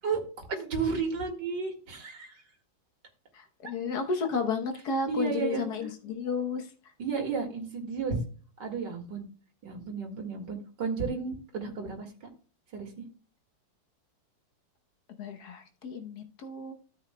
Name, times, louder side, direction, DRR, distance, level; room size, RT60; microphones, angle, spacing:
voice 1, 0.0-2.4 5.1-5.7 7.0-8.2 8.6-9.2 9.6-12.3 12.7-12.9, right 5 dB, 65° right, 2.6 m, -33 dB
voice 2, 3.3-6.7 15.2-16.7, left 4 dB, 60° left, 1.4 m, -32 dB
13.0 x 7.7 x 2.2 m
omnidirectional pair, 2.1 m